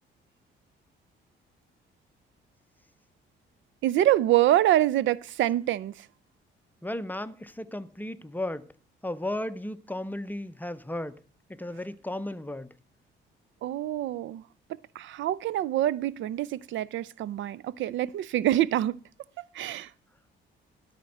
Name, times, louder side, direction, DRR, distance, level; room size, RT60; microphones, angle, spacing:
voice 1, 3.8-5.9 13.6-14.4 15.0-19.0 19.5-19.9, right 13 dB, 70° right, 0.4 m, -25 dB
voice 2, 6.8-8.7 9.0-11.2 11.5-12.7, left 1 dB, 10° left, 0.6 m, -34 dB
12.5 x 4.4 x 7.8 m
cardioid pair, 90°, 20 cm